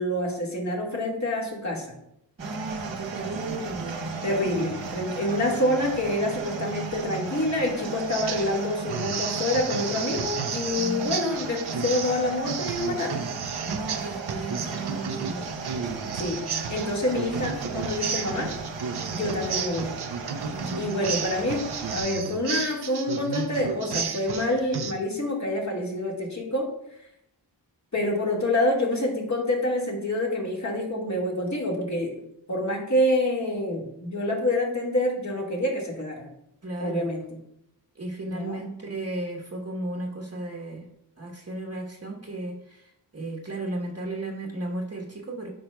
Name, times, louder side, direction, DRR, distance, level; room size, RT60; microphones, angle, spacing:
voice 1, 0.0-1.9 4.2-13.2 16.1-16.4 16.7-18.5 19.0-19.9 20.8-21.7 21.9-26.7 27.9-32.1 32.5-36.3 36.8-37.2 38.3-38.6, left 1 dB, 40° left, -1 dB, 1.8 m, -27 dB
voice 2, 2.4-4.2 10.7-11.3 13.7-15.6 20.4-21.0 36.6-37.1 37.9-40.9 41.2-45.5, right 2 dB, 35° right, -2 dB, 1.2 m, -35 dB
sound 1, 2.4-22.0, right 4 dB, 85° right, 1.0 m, -36 dB
sound 2, 8.1-8.6 8.9-24.9, right 6 dB, 60° right, 0.7 m, -33 dB
8.8 x 5.3 x 2.3 m, 0.79 s
cardioid pair, 40°, 43 cm